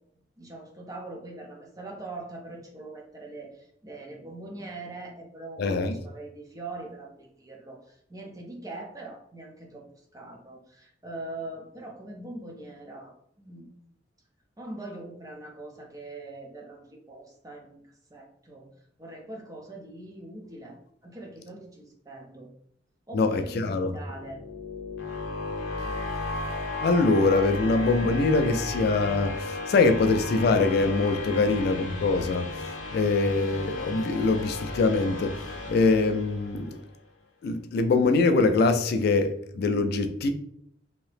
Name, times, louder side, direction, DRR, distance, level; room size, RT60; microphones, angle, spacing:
voice 1, 0.4-9.8 10.1-13.7 14.6-17.8 18.1-18.7 19.0-20.8 21.0-22.5 23.1-24.4, right 2 dB, 20° right, 1 dB, 0.6 m, -42 dB
voice 2, 5.6-6.0 23.1-23.9 26.8-32.5 32.9-35.3 35.7-36.8 37.4-40.3, left 3 dB, 55° left, 8 dB, 0.3 m, -23 dB
sound 1, 23.9-36.8, left 2 dB, 80° left, 0.7 m, -35 dB
2.9 x 2.7 x 3.2 m, 0.70 s
head